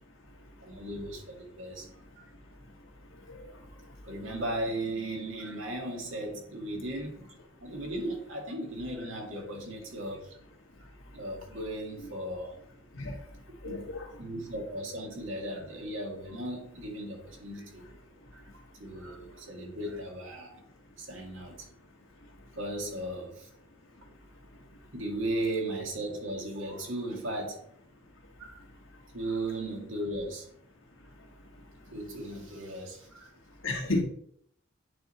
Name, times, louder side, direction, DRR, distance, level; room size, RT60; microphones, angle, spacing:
voice 1, 0.6-1.9 2.2-2.3 4.0-7.3 7.6-10.4 11.1-12.6 13.6-13.9 14.2-17.9 18.3-20.6 21.0-21.7 22.5-23.5 24.9-27.6 28.4-28.6 29.1-30.5 31.9-33.3, right 1 dB, 75° right, 1 dB, 2.0 m, -36 dB
voice 2, 13.6-14.1 33.6-34.0, left 2 dB, 80° left, 2 dB, 1.6 m, -31 dB
8.8 x 3.8 x 4.2 m, 0.65 s
head